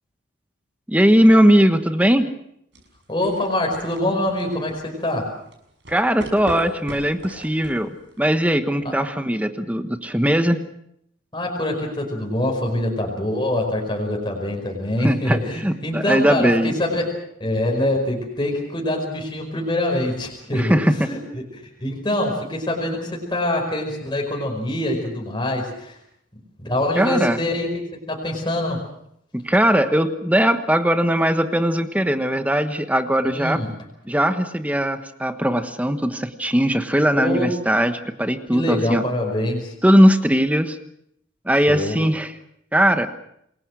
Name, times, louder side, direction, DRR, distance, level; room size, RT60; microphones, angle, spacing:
voice 1, 0.9-2.3 5.9-10.6 15.0-16.7 20.5-21.1 27.0-27.4 29.3-33.6 34.1-39.0 39.8-40.8 41.4-42.3 42.7-43.1, equal, 10° right, 8 dB, 1.2 m, -19 dB
sound 1, 2.7-8.4, equal, 65° right, 6.5 m, -37 dB
voice 2, 3.1-5.3 8.8-8.9 11.3-17.1 17.4-21.2 21.5-26.0 26.6-27.7 28.1-28.8 33.2-33.7 37.1-37.5 38.5-39.7 41.7-42.0, left 1 dB, 25° left, 1 dB, 5.1 m, -24 dB
27.5 x 22.0 x 6.3 m, 0.73 s
head